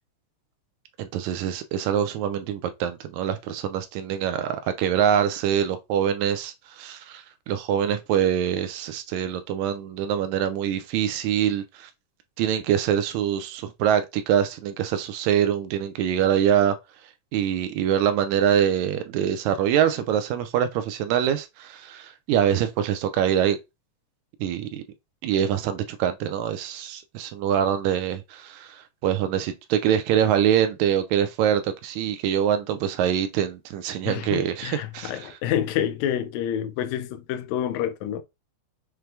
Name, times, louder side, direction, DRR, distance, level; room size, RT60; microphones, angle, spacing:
voice 1, 1.0-11.9 12.4-16.8 17.3-23.6 24.4-24.8 25.2-35.3, right 9 dB, 80° right, 1.8 m, -24 dB
voice 2, 34.1-38.2, left 10 dB, 80° left, 1.8 m, -28 dB
5.9 x 2.2 x 3.3 m
omnidirectional pair, 3.5 m